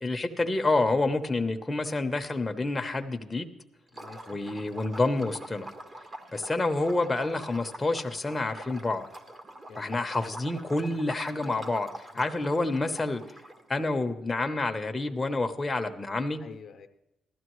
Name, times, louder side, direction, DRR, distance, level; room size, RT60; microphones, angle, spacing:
voice 1, 0.0-3.5 4.3-5.7 6.3-9.1 9.8-13.2 13.7-16.4, left 2 dB, 20° left, 6 dB, 0.8 m, -28 dB
voice 2, 3.9-4.4 9.7-10.1 12.1-12.3 16.4-16.9, left 6 dB, 55° left, 7 dB, 0.7 m, -47 dB
Liquid, 3.9-13.8, right 1 dB, 30° right, 1.4 m, -45 dB
15.5 x 12.5 x 3.1 m, 0.90 s
cardioid pair, 90°, 0 cm